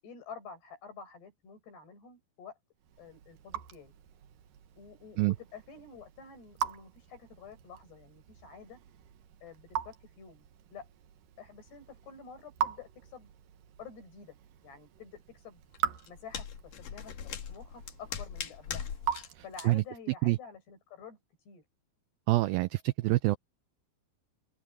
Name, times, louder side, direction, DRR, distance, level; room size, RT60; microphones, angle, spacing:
voice 1, 0.0-2.6 3.0-3.9 4.8-8.8 9.4-10.9 11.4-13.3 13.8-14.4 14.6-15.6 16.1-16.5 16.8-18.9 19.4-21.2 21.5-21.6, left 5 dB, 75° left, 9.2 m, -49 dB
Raindrop / Drip, 2.8-20.0, right 9 dB, 65° right, 2.8 m, -42 dB
sound 1, 15.7-19.3 19.5-19.7, left 8 dB, 55° left, 3.4 m, -40 dB
voice 2, 22.3-23.4, right 19 dB, 90° right, 2.0 m, -26 dB
omnidirectional pair, 4.8 m